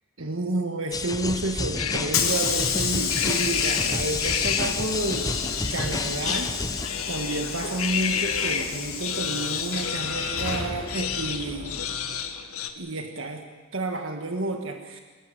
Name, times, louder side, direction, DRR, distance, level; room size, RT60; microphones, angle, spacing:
voice 1, 0.2-5.3 5.7-6.8 7.1-12.0 12.8-13.4 13.7-15.0, right 2 dB, 60° right, 4 dB, 1.7 m, -30 dB
sound 1, 0.9-6.9, left 3 dB, 15° left, 0.8 m, -31 dB
Hiss / Sliding door, 1.4-12.3, left 6 dB, 65° left, 4.2 m, -31 dB
sound 2, 1.8-8.7 9.0-12.7, left 8 dB, 80° left, 1.8 m, -30 dB
27.0 x 14.5 x 9.9 m, 1.4 s
head